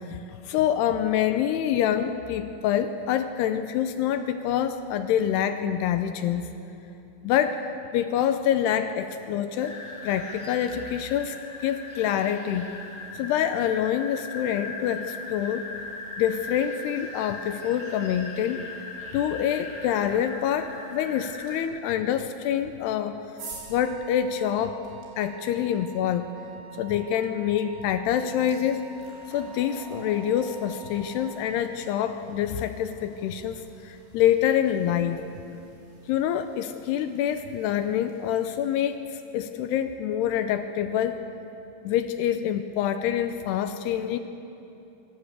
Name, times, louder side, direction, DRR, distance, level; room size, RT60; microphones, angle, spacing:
voice 1, 0.1-6.5 7.2-7.6 7.9-11.4 11.6-12.7 13.1-15.7 16.2-18.6 19.1-23.2 23.7-24.8 25.2-26.3 26.8-28.8 29.3-35.2 36.1-41.2 41.8-44.2, left 10 dB, 80° left, 9 dB, 2.6 m, -26 dB
sound 1, 9.6-21.6, left 3 dB, 25° left, 2.6 m, -39 dB
sound 2, 21.5-21.6 22.6-25.1 27.4-27.5 27.9-38.9, right 3 dB, 80° right, 5.9 m, -49 dB
Wind instrument woodwind instrument, 23.4-31.6, right 4 dB, 45° right, 3.4 m, -46 dB
24.5 x 15.5 x 8.1 m, 2.8 s
omnidirectional pair, 5.2 m